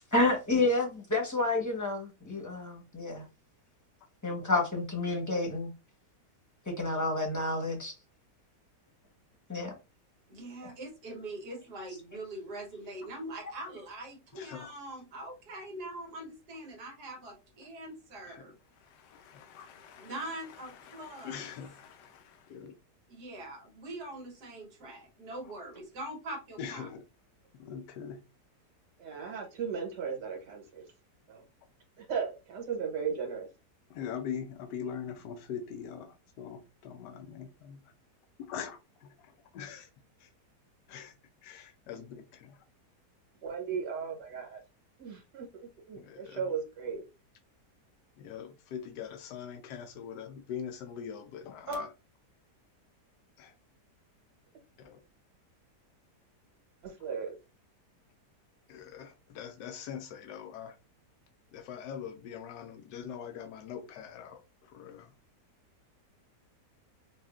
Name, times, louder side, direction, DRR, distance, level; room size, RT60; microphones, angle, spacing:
voice 1, 0.1-3.3 4.2-5.7 6.7-7.9 9.5-9.7, left 2 dB, 15° left, 0.9 m, -29 dB
voice 2, 10.3-18.6 20.0-21.4 23.1-26.9, right 1 dB, 70° right, 1.6 m, -43 dB
voice 3, 14.3-14.7 18.2-18.4 18.7-22.7 25.4-25.5 26.6-27.0 27.6-28.2 33.9-37.8 38.4-39.9 40.2-40.3 40.9-41.1 41.4-42.6 45.9-46.5 48.2-51.9 53.4-53.5 54.8-55.0 58.7-60.8 61.5-65.1, left 8 dB, 85° left, 1.3 m, -43 dB
voice 4, 29.0-30.9 31.3-31.4 32.0-33.5 43.4-44.6 45.0-45.5 45.9-47.0 51.7-51.8 56.8-57.4, right 6 dB, 90° right, 1.8 m, -36 dB
5.4 x 2.4 x 2.4 m
omnidirectional pair, 1.8 m